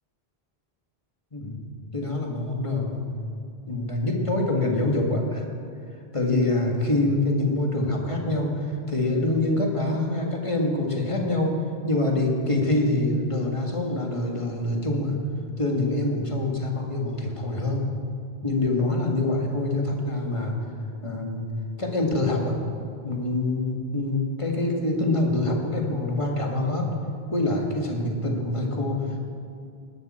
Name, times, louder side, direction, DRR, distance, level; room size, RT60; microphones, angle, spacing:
voice 1, 1.3-1.6 1.9-3.0 3.7-5.5 6.1-11.5 11.9-15.2 15.6-17.9 18.4-20.6 21.0-21.5 21.8-22.5 23.0-26.9 27.3-29.2, left 2 dB, 30° left, 0 dB, 1.9 m, -25 dB
19.5 x 12.0 x 4.3 m, 2.4 s
omnidirectional pair, 1.1 m